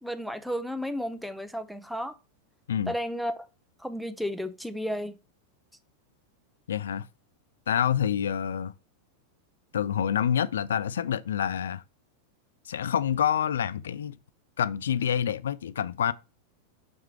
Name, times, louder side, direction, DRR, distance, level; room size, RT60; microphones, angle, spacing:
voice 1, 0.0-2.1 2.9-3.5 3.8-5.2, equal, ahead, 0.7 m, -33 dB
voice 2, 6.7-7.1 7.7-8.7 9.7-11.8 12.7-14.2 14.6-16.1, left 9 dB, 65° left, 0.4 m, -27 dB
6.3 x 4.8 x 4.4 m
figure-of-eight pair, 90°, 0 cm